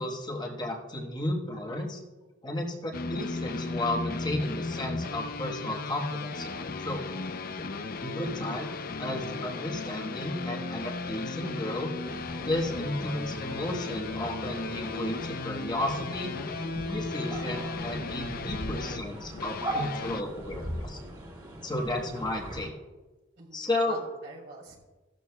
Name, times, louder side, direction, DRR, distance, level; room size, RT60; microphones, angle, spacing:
voice 1, 0.0-2.0 2.4-7.1 8.0-11.9 12.4-16.3 16.9-21.0 21.6-22.7 23.5-24.0, left 1 dB, 25° left, -1 dB, 1.2 m, -33 dB
sound 1, 2.9-20.2, left 3 dB, 50° left, 0.6 m, -36 dB
voice 2, 7.5-7.9 23.4-24.8, right 1 dB, 65° right, -3 dB, 4.0 m, -46 dB
sound 2, 11.9-22.7, right 1 dB, 25° right, 2.4 m, -40 dB
15.5 x 13.0 x 2.3 m, 1.2 s
head